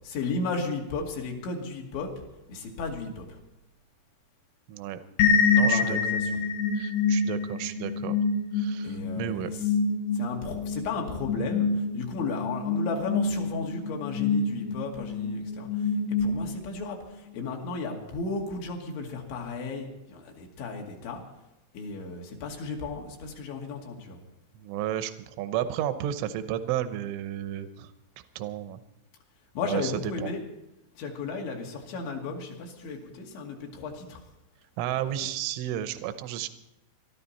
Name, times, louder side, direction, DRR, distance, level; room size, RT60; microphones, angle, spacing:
voice 1, 0.0-2.1 2.5-3.3 5.6-6.4 8.8-9.4 10.1-11.7 11.9-15.7 16.2-17.0 17.3-21.2 21.7-24.2 29.6-30.4 31.0-34.2, left 3 dB, 70° left, 1 dB, 4.4 m, -34 dB
voice 2, 4.7-5.0 5.5-6.0 6.7-8.2 8.5-9.5 24.6-27.9 28.4-28.8 29.6-30.3 34.8-36.5, right 11 dB, 85° right, 10 dB, 3.3 m, -32 dB
sound 1, 5.2-16.8, left 4 dB, 85° left, 3.9 m, -27 dB
23.0 x 13.0 x 4.2 m, 0.89 s
omnidirectional pair, 5.7 m